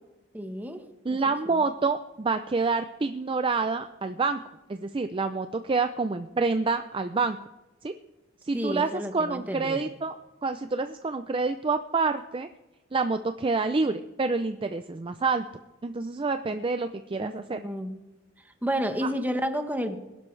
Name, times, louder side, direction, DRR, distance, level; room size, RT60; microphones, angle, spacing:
voice 1, 0.3-0.8 1.1-1.2 1.5-1.6 8.5-9.8 17.2-18.0 18.6-20.0, equal, 10° right, 7 dB, 1.1 m, -31 dB
voice 2, 1.0-4.4 4.7-7.4 7.8-7.9 8.4-10.1 10.4-12.5 12.9-15.4 15.8-17.6, right 4 dB, 25° right, 9 dB, 0.4 m, -27 dB
21.0 x 11.5 x 3.3 m, 1.0 s
head